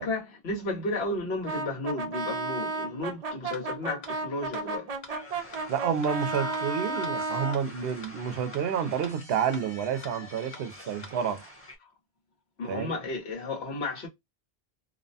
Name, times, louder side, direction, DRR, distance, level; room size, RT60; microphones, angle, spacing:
voice 1, 0.0-4.9 6.3-6.6 6.9-7.1 12.6-14.1, left 2 dB, 80° left, 1.4 m, -33 dB
Brass instrument, 1.4-7.6, right 3 dB, 45° right, 0.5 m, -33 dB
sound 1, 3.5-3.6 4.0-4.1 4.5-4.6 5.0-5.1 5.5-5.6 6.0-6.1 6.5-6.6 7.0-7.1 7.5-7.6 8.0-8.1 8.5-8.6 9.0-9.1 9.5-9.6 10.0-10.1 10.5-10.6 11.0-11.1, left 4 dB, 50° left, 0.6 m, -44 dB
sound 2, 5.1-11.8, left 1 dB, 15° left, 0.9 m, -47 dB
voice 2, 5.7-11.5 12.6-12.9, right 7 dB, 70° right, 0.8 m, -29 dB
2.8 x 2.1 x 2.6 m
omnidirectional pair, 1.1 m